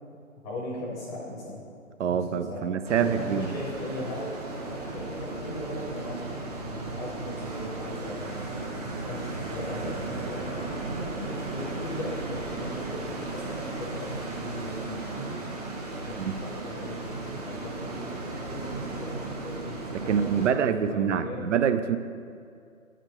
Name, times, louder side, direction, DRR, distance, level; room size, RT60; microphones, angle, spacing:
voice 1, 0.4-1.6 2.1-2.7 3.0-4.3 4.6-8.4 9.1-15.4 16.0-21.4, left 1 dB, 5° left, -6 dB, 0.8 m, -38 dB
voice 2, 2.0-3.5 16.2-16.4 19.9-22.0, right 7 dB, 60° right, 11 dB, 0.5 m, -26 dB
sound 1, 2.8-20.5, right 3 dB, 30° right, 0.8 m, -36 dB
8.8 x 5.1 x 4.3 m, 2.3 s
figure-of-eight pair, 150°, 41 cm